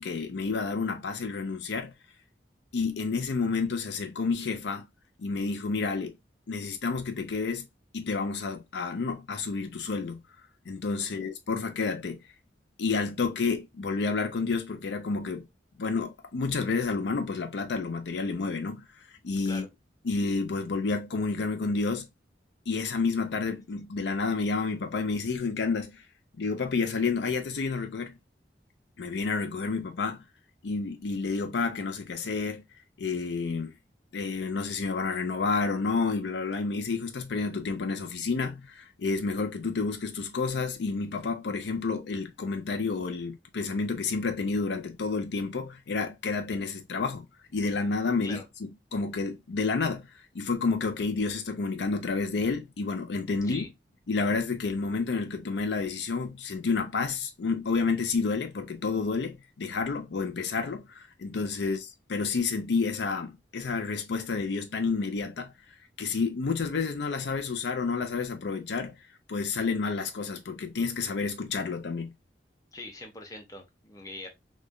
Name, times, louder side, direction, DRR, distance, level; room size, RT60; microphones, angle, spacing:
voice 1, 0.0-1.9 2.7-4.9 5.2-6.2 6.5-7.7 7.9-10.2 10.7-12.2 12.8-15.5 15.8-18.9 19.2-19.7 20.1-22.1 22.7-26.0 26.4-28.2 29.0-30.2 30.6-32.6 33.0-33.7 34.1-47.3 47.5-48.4 48.9-50.1 50.3-53.7 54.1-65.5 66.0-69.0 69.3-72.1, left 4 dB, 75° left, 0.5 m, -30 dB
voice 2, 72.7-74.3, left 2 dB, 20° left, 0.8 m, -43 dB
3.2 x 2.2 x 3.6 m
head